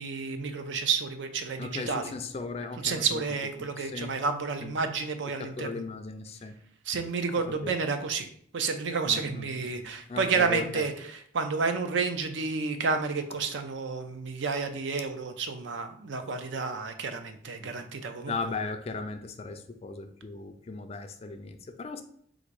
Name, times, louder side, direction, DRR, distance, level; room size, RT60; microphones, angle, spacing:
voice 1, 0.0-2.0 2.8-5.8 6.9-18.3, right 4 dB, 70° right, 7 dB, 0.5 m, -30 dB
voice 2, 1.6-3.2 3.8-4.1 4.6-4.7 5.4-6.5 7.6-7.7 9.1-9.4 9.7-10.8 17.6-17.7 18.3-22.0, left 3 dB, 30° left, 7 dB, 0.3 m, -37 dB
3.9 x 2.5 x 4.6 m, 0.64 s
head